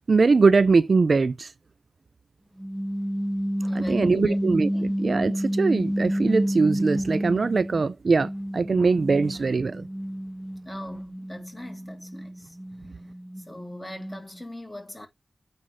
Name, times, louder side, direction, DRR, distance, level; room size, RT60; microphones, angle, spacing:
voice 1, 0.1-1.5 3.7-9.9, right 4 dB, 60° right, 0.4 m, -22 dB
sound 1, 2.6-7.8 8.2-14.4, equal, 20° right, 1.7 m, -30 dB
voice 2, 3.7-4.4 4.7-4.8 10.6-12.6 13.5-15.1, left 1 dB, 15° left, 2.5 m, -41 dB
8.8 x 3.9 x 3.3 m
wide cardioid pair, 80°, 0 cm